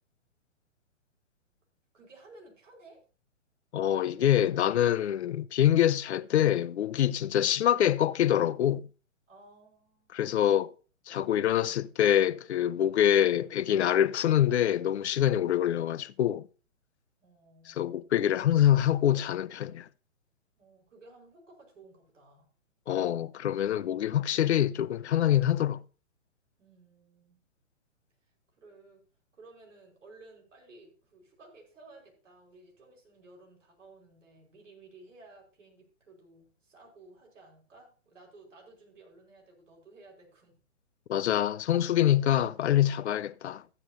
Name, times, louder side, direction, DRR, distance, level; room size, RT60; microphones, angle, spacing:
voice 1, 1.9-3.0 9.3-10.2 17.2-18.2 20.6-22.5 26.6-27.4 28.6-29.0 29.3-40.6, right 2 dB, 70° right, 5.0 m, -55 dB
voice 2, 3.7-8.9 10.1-10.7 11.1-16.5 17.7-19.9 22.9-25.8 41.1-43.6, left 11 dB, 60° left, 0.5 m, -25 dB
14.0 x 9.1 x 2.7 m
hypercardioid pair, 130°, 39 cm